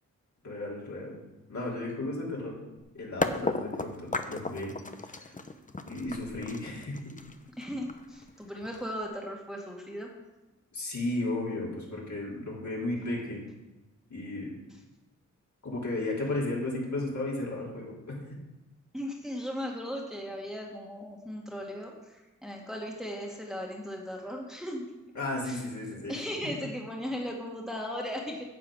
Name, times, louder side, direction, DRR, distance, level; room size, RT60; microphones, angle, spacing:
voice 1, 0.4-1.2 1.5-2.6 2.9-4.7 5.0-5.3 5.9-7.0 10.7-13.4 14.1-14.5 15.6-18.2 25.1-26.2, left 2 dB, 60° left, -4 dB, 3.7 m, -34 dB
sound 1, 2.8-2.9 3.2-9.0, left 3 dB, 25° left, 0.9 m, -34 dB
voice 2, 7.6-10.2 18.9-24.9 25.5-25.6 26.1-28.4, equal, ahead, -1 dB, 2.0 m, -37 dB
9.8 x 7.5 x 6.4 m, 1.0 s
cardioid pair, 60°, 32 cm